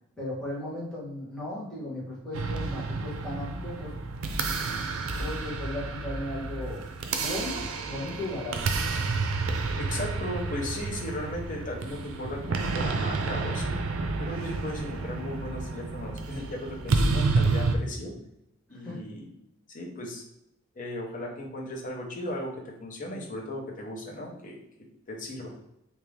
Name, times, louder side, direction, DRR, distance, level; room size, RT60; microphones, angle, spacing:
voice 1, 0.2-3.9 5.2-6.9 7.2-8.6 18.7-19.0, left 1 dB, 5° left, -8 dB, 1.4 m, -36 dB
Alien gun in space, 2.3-17.8, right 3 dB, 80° right, 0.5 m, -30 dB
voice 2, 9.8-13.7 14.2-18.1 18.7-19.3 19.7-20.2 20.7-24.6 25.1-25.5, left 1 dB, 40° left, -2 dB, 0.9 m, -36 dB
3.6 x 2.8 x 3.3 m, 0.81 s
head